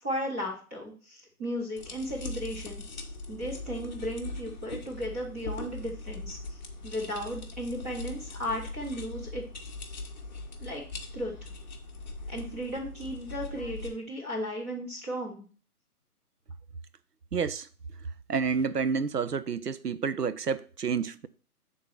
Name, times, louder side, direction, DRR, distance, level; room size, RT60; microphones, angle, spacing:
voice 1, 0.0-9.5 9.8-10.0 10.6-10.8 11.1-11.5 12.3-15.5, equal, 10° right, 0.7 m, -35 dB
sound 1, 1.8-13.9, left 2 dB, 30° left, 0.8 m, -40 dB
voice 2, 17.3-17.7 18.3-21.3, right 6 dB, 85° right, 0.7 m, -29 dB
6.2 x 3.9 x 5.8 m
figure-of-eight pair, 140°, 46 cm